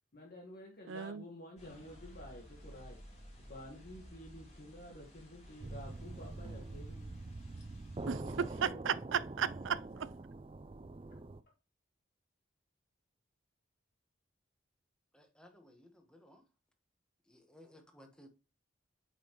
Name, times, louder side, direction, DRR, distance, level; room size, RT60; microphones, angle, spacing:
voice 1, 0.1-3.0 3.5-7.1 8.6-8.9, left 1 dB, 50° left, 1.6 m, -51 dB
voice 2, 0.9-1.2 8.1-10.1, right 7 dB, 85° right, 0.5 m, -35 dB
sound 1, 1.6-8.6, equal, 35° left, 3.8 m, -55 dB
sound 2, 5.6-11.4, right 2 dB, 25° right, 0.4 m, -44 dB
voice 3, 15.1-16.4 17.2-18.3, left 1 dB, 5° left, 1.3 m, -59 dB
8.5 x 5.6 x 3.1 m
head